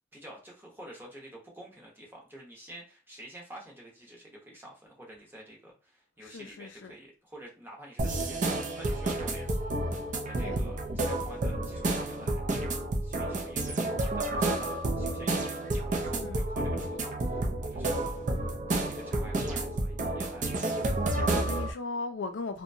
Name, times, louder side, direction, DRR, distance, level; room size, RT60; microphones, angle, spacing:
voice 1, 0.1-12.4 13.0-18.2 18.7-20.7, right 1 dB, 10° right, 0.8 m, -49 dB
voice 2, 6.2-6.9 10.4-10.6 11.0-11.1 13.3-13.4 16.1-16.4 21.1-22.6, left 3 dB, 75° left, 0.4 m, -38 dB
sound 1, 8.0-21.7, right 2 dB, 40° right, 0.4 m, -30 dB
2.7 x 2.1 x 2.6 m
head